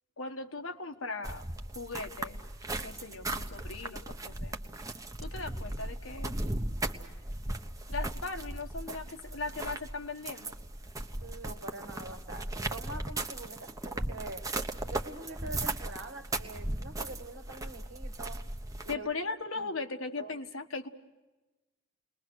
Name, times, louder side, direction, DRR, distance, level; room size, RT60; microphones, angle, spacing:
voice 1, 0.2-1.4 1.7-2.4 2.8-4.6 5.2-6.3 7.9-10.5 18.9-20.9, left 3 dB, 75° left, 6 dB, 1.6 m, -38 dB
sound 1, 1.2-18.9, right 2 dB, 15° right, 1.1 m, -37 dB
voice 2, 11.2-14.5 14.9-18.4 18.8-19.1 19.5-19.7 20.2-20.4, right 2 dB, 65° right, 7 dB, 1.8 m, -44 dB
29.5 x 21.5 x 6.4 m, 1.1 s
head